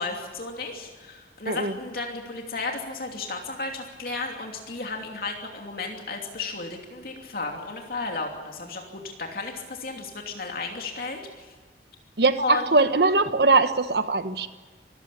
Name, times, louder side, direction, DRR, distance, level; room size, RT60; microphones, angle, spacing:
voice 1, 0.0-11.5 12.4-12.7, left 3 dB, 55° left, 2 dB, 2.9 m, -33 dB
voice 2, 12.2-14.5, right 3 dB, 65° right, 10 dB, 1.3 m, -21 dB
25.0 x 15.0 x 8.6 m, 1.4 s
head